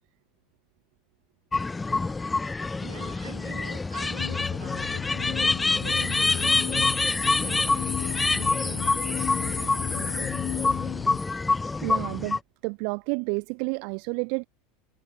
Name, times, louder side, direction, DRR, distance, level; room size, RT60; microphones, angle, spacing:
sound 1, 1.5-12.4, left 3 dB, 15° left, 0.6 m, -26 dB
voice 1, 2.8-11.0, right 6 dB, 75° right, 6.4 m, -46 dB
sound 2, 4.2-11.2, left 14 dB, 40° left, 1.5 m, -35 dB
voice 2, 11.8-14.5, right 40 dB or more, 50° right, 0.4 m, -30 dB
figure-of-eight pair, 75°, 0 cm